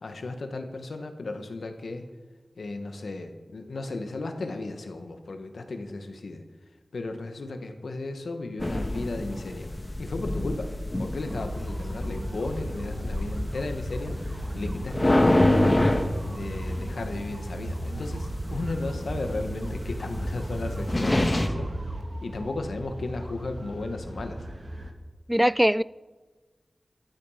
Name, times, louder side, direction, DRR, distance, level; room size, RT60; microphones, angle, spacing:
voice 1, 0.0-2.1 2.6-6.4 6.9-9.7 10.0-10.7 11.0-15.7 16.3-21.7 22.2-24.4, left 2 dB, 90° left, 1.5 m, -35 dB
sound 1, 8.6-21.5, left 1 dB, 35° left, 1.7 m, -27 dB
sound 2, 11.3-24.9, right 1 dB, 50° right, 2.0 m, -36 dB
voice 2, 25.3-25.8, equal, 5° right, 0.4 m, -21 dB
14.0 x 12.5 x 5.7 m
cardioid pair, 40°, 0 cm